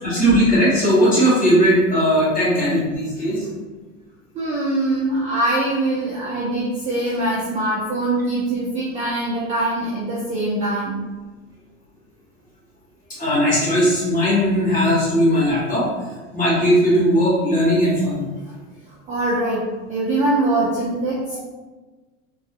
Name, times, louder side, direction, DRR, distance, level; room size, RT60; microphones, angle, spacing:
voice 1, 0.0-3.4 13.2-15.8 16.3-18.2, equal, 20° left, -9 dB, 1.4 m, -18 dB
voice 2, 4.3-10.9 19.1-19.6 19.9-21.4, right 2 dB, 20° right, -7 dB, 0.4 m, -23 dB
3.3 x 2.3 x 2.6 m, 1.3 s
supercardioid pair, 145°, 37 cm